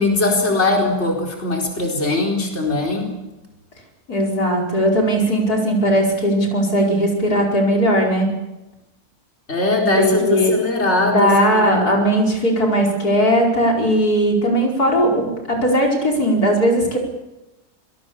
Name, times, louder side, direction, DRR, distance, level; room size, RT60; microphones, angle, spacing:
voice 1, 0.0-3.1 9.5-11.9, left 2 dB, 45° left, 0 dB, 4.7 m, -20 dB
voice 2, 4.1-8.3 10.0-10.5 11.1-17.0, equal, 80° left, 0 dB, 5.3 m, -18 dB
25.5 x 21.5 x 7.1 m, 0.99 s
omnidirectional pair, 1.6 m